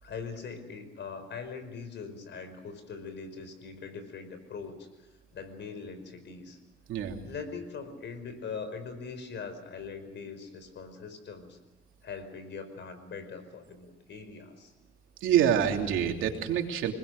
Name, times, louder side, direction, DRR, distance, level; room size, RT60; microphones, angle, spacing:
voice 1, 0.0-4.9 5.3-6.6 7.3-11.6 12.0-14.7, left 5 dB, 65° left, 10 dB, 5.2 m, -41 dB
voice 2, 15.2-16.9, right 9 dB, 85° right, 3 dB, 3.2 m, -26 dB
28.0 x 20.5 x 6.7 m, 1.1 s
cardioid pair, 90°, 20 cm